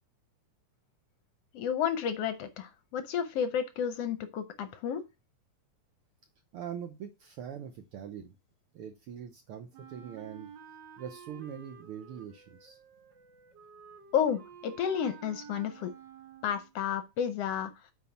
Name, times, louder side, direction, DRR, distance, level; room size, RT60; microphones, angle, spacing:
voice 1, 1.5-5.0 14.1-15.9 16.4-17.7, left 8 dB, 70° left, 10 dB, 1.5 m, -31 dB
voice 2, 6.5-8.3 8.7-10.5 11.0-12.8, right 8 dB, 75° right, 7 dB, 1.3 m, -42 dB
Wind instrument woodwind instrument, 9.7-16.7, right 7 dB, 50° right, 1.4 m, -51 dB
8.3 x 4.6 x 5.7 m, 0.25 s
omnidirectional pair, 3.5 m